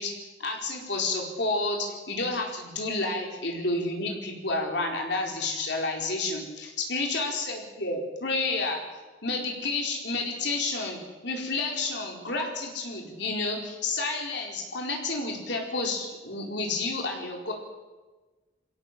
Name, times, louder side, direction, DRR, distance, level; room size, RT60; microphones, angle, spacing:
voice 1, 0.0-8.8 9.2-17.5, left 3 dB, 65° left, 1 dB, 4.5 m, -30 dB
23.0 x 17.0 x 7.6 m, 1.2 s
head